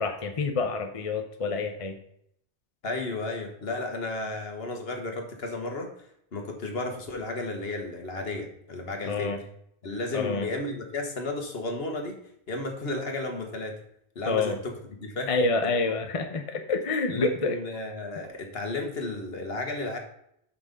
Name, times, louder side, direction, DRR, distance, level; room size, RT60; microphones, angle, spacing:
voice 1, 0.0-2.0 9.0-9.4 10.1-10.5 14.3-14.6 15.3-17.6, left 3 dB, 35° left, 5 dB, 0.7 m, -27 dB
voice 2, 2.8-5.9 6.3-9.3 9.8-12.2 12.5-13.8 14.1-15.3 17.1-20.0, left 2 dB, 60° left, 3 dB, 1.6 m, -33 dB
6.1 x 5.8 x 5.1 m, 0.72 s
omnidirectional pair, 1.1 m